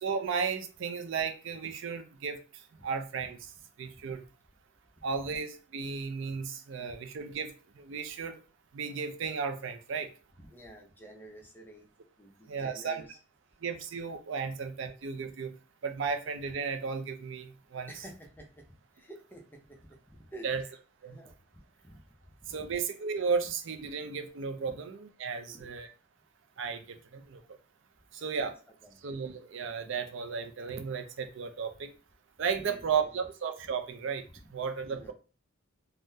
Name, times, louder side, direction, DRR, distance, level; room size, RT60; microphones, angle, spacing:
voice 1, 0.0-3.5 3.8-4.2 5.0-8.3 8.7-10.1 12.5-13.0 13.6-15.5 15.8-17.9 20.4-20.6 21.0-21.2 22.5-25.9 26.6-27.4 28.1-28.5 29.0-31.9 32.4-34.2 34.5-35.1, right 5 dB, 65° right, 7 dB, 0.4 m, -34 dB
voice 2, 10.4-11.9 12.2-13.2 17.9-20.7 21.1-22.0 22.5-22.7 24.7-24.8 25.4-25.7 28.4-28.5 28.8-29.1 32.6-33.2 34.3-34.4 34.9-35.1, right 1 dB, 10° left, 1 dB, 0.5 m, -51 dB
3.5 x 2.1 x 2.6 m, 0.36 s
head